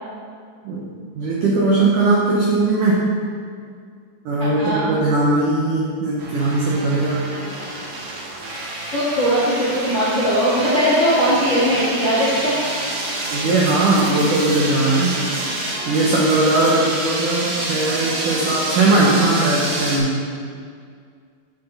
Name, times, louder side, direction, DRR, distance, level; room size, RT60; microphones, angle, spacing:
voice 1, 1.1-3.2 4.2-7.3 13.3-15.2 15.9-20.2, right 2 dB, 85° right, -4 dB, 1.8 m, -19 dB
voice 2, 4.4-4.9 8.9-12.6, equal, 80° left, -8 dB, 0.6 m, -19 dB
sound 1, 6.2-20.0, right 2 dB, 60° right, 1.9 m, -27 dB
9.5 x 8.7 x 4.1 m, 2.1 s
omnidirectional pair, 5.3 m